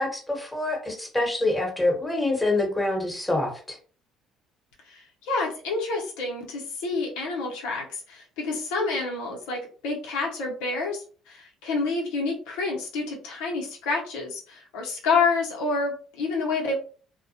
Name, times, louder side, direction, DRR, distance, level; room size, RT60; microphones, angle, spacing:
voice 1, 0.0-3.8, left 2 dB, 10° left, 1 dB, 1.1 m, -26 dB
voice 2, 4.9-16.7, left 4 dB, 80° left, -2 dB, 0.8 m, -28 dB
2.2 x 2.1 x 2.7 m, 0.40 s
supercardioid pair, 70°, 0 cm